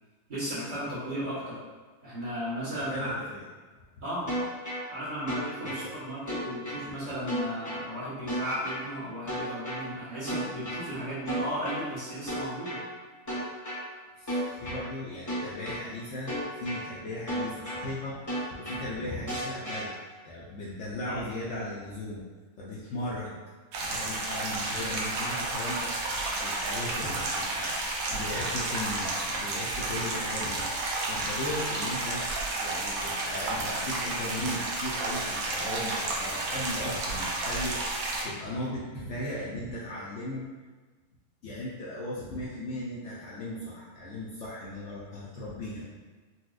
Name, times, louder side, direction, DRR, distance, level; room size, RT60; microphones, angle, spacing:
voice 1, 0.3-1.6 2.0-3.2 4.0-4.3 4.9-12.8 21.1-21.2, equal, 35° right, -12 dB, 1.3 m, -35 dB
voice 2, 2.8-3.4 3.7-3.8 5.6-5.9 14.2-22.2 22.6-23.3 23.8-30.7 31.1-40.5 41.4-45.9, left 1 dB, 65° left, -7 dB, 0.8 m, -37 dB
sound 1, 4.3-4.8 5.3-5.8 6.3-6.8 7.3-7.8 8.3-8.8 9.3-9.8 10.3-10.8 11.3-11.8 12.3-12.8 13.3-13.8 14.3-14.8 15.3-15.8 16.3-16.8 17.3-17.8 18.3-18.8 19.3-19.8, equal, 20° left, 0.6 m, -33 dB
sound 2, 23.7-38.2, right 2 dB, 80° right, 1.1 m, -31 dB
4.1 x 2.2 x 2.4 m, 1.4 s
omnidirectional pair, 1.5 m